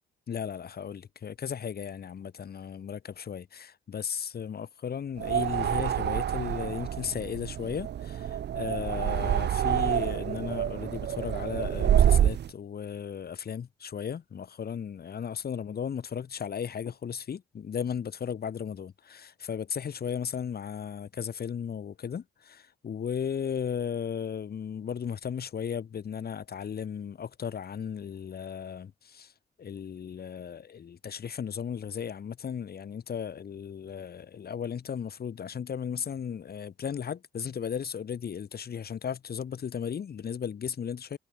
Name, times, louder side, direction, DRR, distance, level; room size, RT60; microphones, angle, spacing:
voice 1, 0.3-29.3 29.6-41.2, left 7 dB, 50° left, 5.3 m, -35 dB
sound 1, 5.2-12.5, right 10 dB, 60° right, 1.2 m, -27 dB
cardioid pair, 90°, 20 cm